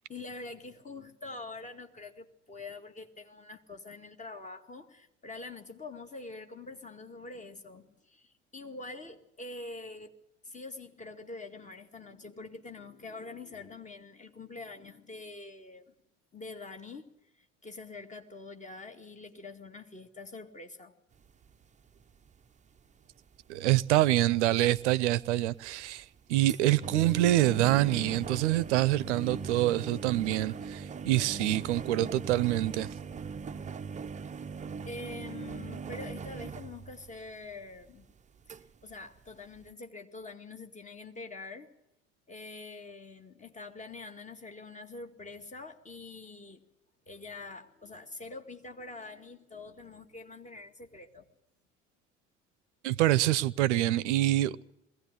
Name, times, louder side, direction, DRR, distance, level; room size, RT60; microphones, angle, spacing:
voice 1, 0.1-10.1 10.4-15.9 16.3-17.1 17.4-20.9 34.8-38.1 38.8-41.7 42.3-46.6 47.1-51.3, left 3 dB, 20° left, 2.1 m, -45 dB
sound 1, 21.4-21.6 22.0-22.1 22.3-22.4 22.8-22.9 23.3-23.4 23.7-23.9 24.2-24.9 25.4-37.6 38.1-38.2 38.5-38.6 38.9-39.3 39.5-39.6, right 5 dB, 20° right, 0.7 m, -40 dB
voice 2, 23.5-32.9 52.8-54.6, right 15 dB, 65° right, 0.7 m, -26 dB
21.0 x 17.0 x 9.8 m
figure-of-eight pair, 65°, 37 cm